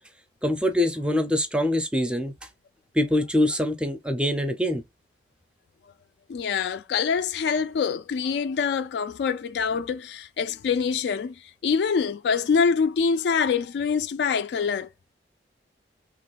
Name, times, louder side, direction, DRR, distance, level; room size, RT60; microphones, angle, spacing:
voice 1, 0.4-2.3 2.9-4.8, left 1 dB, 5° right, 0.4 m, -24 dB
voice 2, 6.3-11.3 11.6-14.9, left 6 dB, 70° left, 0.3 m, -25 dB
2.9 x 2.3 x 4.0 m
head